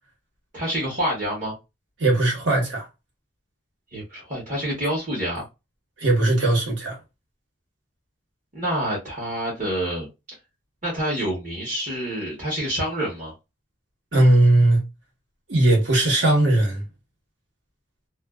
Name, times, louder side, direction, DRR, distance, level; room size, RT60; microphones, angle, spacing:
voice 1, 0.5-1.6 3.9-5.4 8.5-10.1 10.8-13.3, equal, 40° right, 0.9 m, -27 dB
voice 2, 2.0-2.9 6.0-7.0 14.1-14.8 15.5-16.8, right 1 dB, 70° right, 1.1 m, -18 dB
2.4 x 2.2 x 2.2 m
head